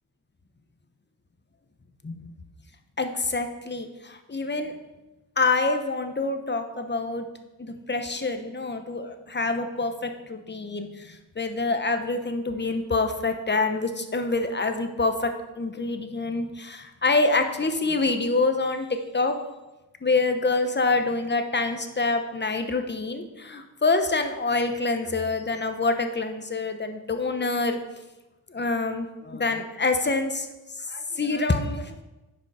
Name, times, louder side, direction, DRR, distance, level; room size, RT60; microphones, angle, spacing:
voice 1, 3.0-4.7 5.4-7.3 7.6-15.3 15.6-19.4 20.0-27.8 28.5-30.5 30.8-32.0, left 3 dB, 25° left, 7 dB, 1.0 m, -26 dB
10.0 x 5.2 x 4.8 m, 1.1 s
cardioid pair, 70°, 41 cm